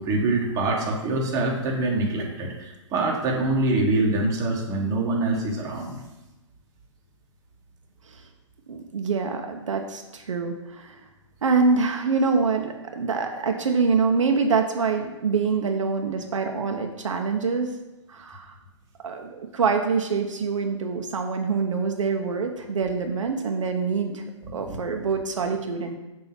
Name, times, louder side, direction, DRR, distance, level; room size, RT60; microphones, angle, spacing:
voice 1, 0.0-6.0 24.4-24.7, right 2 dB, 20° right, -1 dB, 1.1 m, -25 dB
voice 2, 8.7-11.0 11.4-17.7 18.1-18.6 19.0-24.2 24.5-25.9, right 4 dB, 70° right, 4 dB, 0.7 m, -25 dB
7.0 x 2.8 x 5.8 m, 1.0 s
figure-of-eight pair, 130°, 17 cm